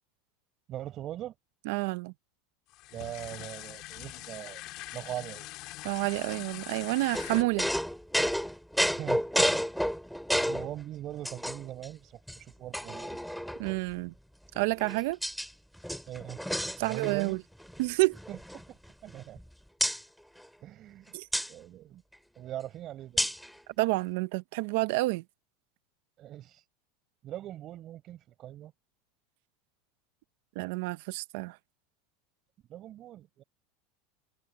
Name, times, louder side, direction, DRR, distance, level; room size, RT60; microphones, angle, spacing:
voice 1, 0.7-1.3 2.9-4.6 4.9-5.5 8.9-9.5 10.4-13.2 16.1-16.4 16.8-17.4 18.3-19.4 20.6-21.1 21.5-22.0 22.4-23.3 26.2-26.6 27.2-28.7 32.7-33.4, right 12 dB, 30° right, 5.1 m, -41 dB
voice 2, 1.7-2.1 5.8-7.7 13.6-14.1 14.5-15.2 16.8-17.4 17.8-18.2 21.1-21.3 23.8-25.2 30.6-31.6, right 22 dB, 60° right, 0.7 m, -29 dB
sound 1, 2.7-7.4, left 18 dB, 45° left, 3.7 m, -43 dB
sound 2, 7.1-10.7 11.3-11.9 12.3-12.4 12.7-13.8 14.6-15.5 15.8-17.3 17.6-17.8 18.1-19.4 19.8-20.0 21.3-21.5 23.2-23.5, equal, ahead, 2.3 m, -31 dB
supercardioid pair, 165°, 0 cm